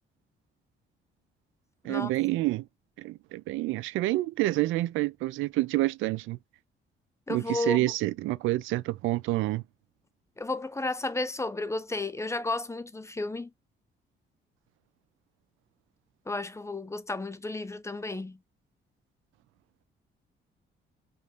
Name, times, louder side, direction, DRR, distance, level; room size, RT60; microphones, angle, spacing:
voice 1, 1.8-2.7 3.0-6.4 7.3-9.6, right 18 dB, 90° right, 0.4 m, -28 dB
voice 2, 7.3-7.8 10.4-13.5 16.3-18.4, left 2 dB, 15° left, 0.5 m, -32 dB
5.3 x 2.5 x 2.9 m
cardioid pair, 90°, 20 cm